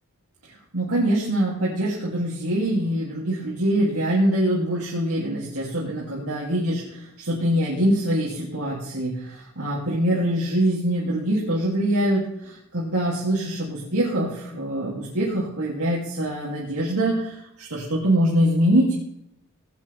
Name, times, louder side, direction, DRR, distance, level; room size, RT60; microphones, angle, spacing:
voice 1, 0.7-18.9, right 1 dB, 85° right, -6 dB, 3.0 m, -24 dB
17.0 x 9.0 x 3.6 m, 0.80 s
head